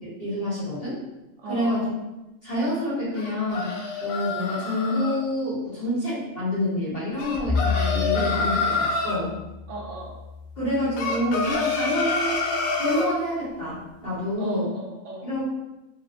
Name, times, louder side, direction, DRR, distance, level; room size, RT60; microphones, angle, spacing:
voice 1, 0.0-1.0 1.5-1.9 2.4-3.7 4.0-9.3 10.6-12.5 12.8-14.7 15.2-15.4, left 1 dB, 45° left, -10 dB, 1.7 m, -27 dB
voice 2, 1.4-1.9 9.7-10.2 14.4-15.3, right 2 dB, 70° right, -3 dB, 0.9 m, -37 dB
sound 1, 3.2-5.2 7.2-9.2 11.0-13.1, left 3 dB, 85° left, 1.0 m, -27 dB
Bowed string instrument, 7.4-11.8, left 5 dB, 65° left, 1.5 m, -31 dB
3.6 x 2.4 x 2.3 m, 0.98 s
omnidirectional pair, 1.4 m